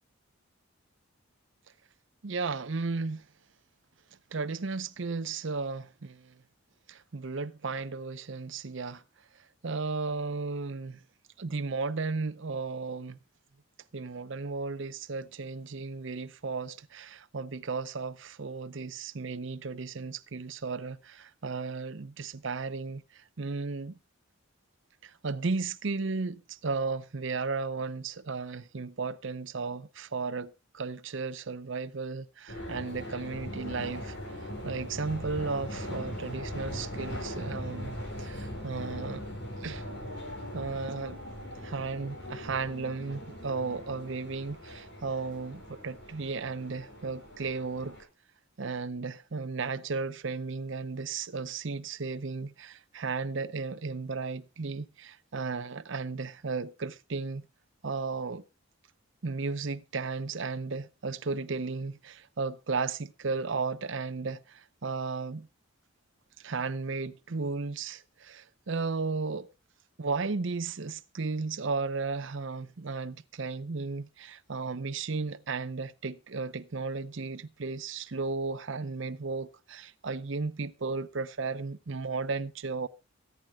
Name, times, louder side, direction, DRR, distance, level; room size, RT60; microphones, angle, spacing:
voice 1, 2.2-3.2 4.3-6.3 6.9-9.0 9.6-11.0 11.4-13.2 13.9-24.0 25.0-34.2 34.6-39.2 39.6-39.8 40.5-41.2 41.5-48.0 48.6-57.5 57.8-58.4 59.2-65.5 66.4-69.5 70.0-82.9, right 4 dB, 60° right, 0.7 m, -34 dB
sound 1, 32.5-48.0, equal, 55° left, 5.8 m, -40 dB
23.5 x 9.2 x 2.3 m
head